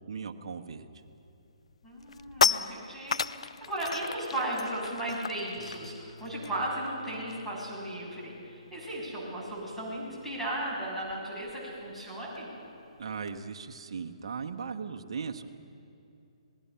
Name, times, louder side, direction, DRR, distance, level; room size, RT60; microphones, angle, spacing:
voice 1, 0.1-0.9 13.0-15.5, right 5 dB, 55° right, 4 dB, 1.3 m, -38 dB
sound 1, 1.0-1.3 1.7-7.6 7.9-8.1 8.4-13.4, left 6 dB, 65° left, 0.6 m, -35 dB
voice 2, 1.8-12.5, right 1 dB, 5° left, -7 dB, 7.1 m, -36 dB
Bass guitar, 5.6-11.8, left 3 dB, 25° left, 6.9 m, -54 dB
25.5 x 20.0 x 5.8 m, 2.7 s
figure-of-eight pair, 135°, 3 cm